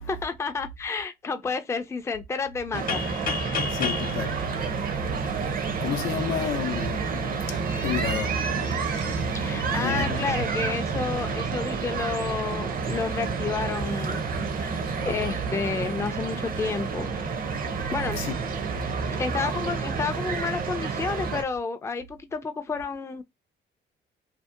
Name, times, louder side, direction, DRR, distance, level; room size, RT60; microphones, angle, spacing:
voice 1, 0.1-3.0 3.4-3.7 9.3-14.2 14.6-14.8 15.0-17.1 17.9-18.2 19.2-23.2, left 5 dB, 15° left, 0.3 m, -30 dB
sound 1, 2.7-21.4, right 5 dB, 45° right, 0.6 m, -29 dB
sound 2, 2.9-5.6, left 5 dB, 45° left, 0.7 m, -32 dB
voice 2, 3.7-10.4 14.9-15.1 17.8-18.3 18.8-19.2, left 5 dB, 85° left, 0.5 m, -33 dB
2.6 x 2.0 x 2.4 m
cardioid pair, 90°, 20 cm